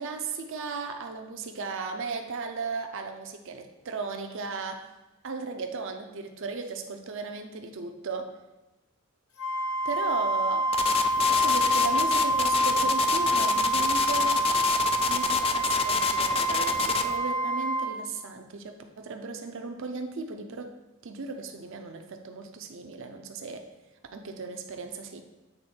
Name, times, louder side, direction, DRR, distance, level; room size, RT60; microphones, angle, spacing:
voice 1, 0.0-4.9 5.2-8.3 9.8-10.8 11.3-14.5 15.1-20.8 21.0-23.6 24.1-25.2, right 4 dB, 65° right, 5 dB, 0.6 m, -36 dB
Wind instrument woodwind instrument, 9.4-17.9, right 2 dB, 85° left, 0.9 m, -27 dB
sound 1, 10.7-17.1, left 10 dB, 25° left, 0.3 m, -25 dB
7.9 x 3.7 x 4.3 m, 1.1 s
head